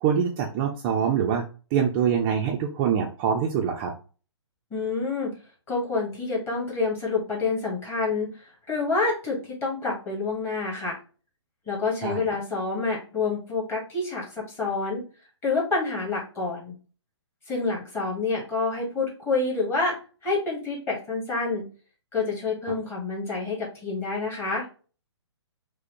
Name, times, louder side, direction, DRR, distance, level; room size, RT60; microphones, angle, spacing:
voice 1, 0.0-1.4 1.7-3.9 12.0-12.2, right 7 dB, 20° right, 0 dB, 0.4 m, -24 dB
voice 2, 4.7-5.3 5.7-11.0 11.7-15.0 15.4-16.7 17.5-21.7 22.1-24.7, left 3 dB, 15° left, -3 dB, 1.4 m, -28 dB
4.7 x 2.1 x 2.9 m, 0.36 s
figure-of-eight pair, 130°, 15 cm